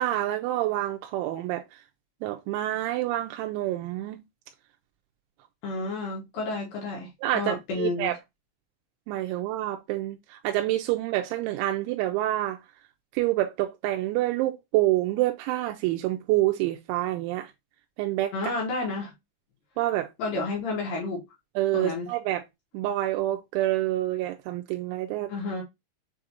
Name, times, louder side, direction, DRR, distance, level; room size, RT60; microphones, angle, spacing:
voice 1, 0.0-1.6 2.2-4.2 7.2-8.2 9.1-12.6 13.1-17.5 18.0-18.3 19.8-20.1 21.6-22.4 22.7-25.3, right 15 dB, 90° right, 2.9 m, -27 dB
voice 2, 5.6-8.1 18.3-19.1 20.2-21.2 21.7-22.1 25.3-25.6, left 3 dB, 70° left, 2.2 m, -31 dB
6.9 x 2.5 x 2.7 m
omnidirectional pair, 5.2 m